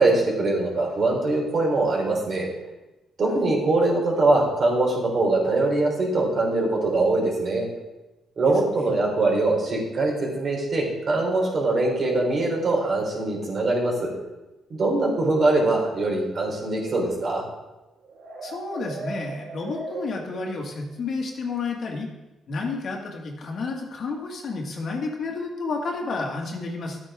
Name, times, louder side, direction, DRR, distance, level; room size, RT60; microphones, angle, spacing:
voice 1, 0.0-2.5 3.2-7.7 8.4-14.1 14.7-17.4, right 2 dB, 50° right, -2 dB, 3.8 m, -22 dB
voice 2, 8.4-8.9 18.4-22.1 22.5-27.0, left 3 dB, 55° left, 1 dB, 2.0 m, -31 dB
sound 1, 16.7-20.8, right 2 dB, 75° right, 1.8 m, -38 dB
11.5 x 8.6 x 3.7 m, 1.1 s
cardioid pair, 90°, 0 cm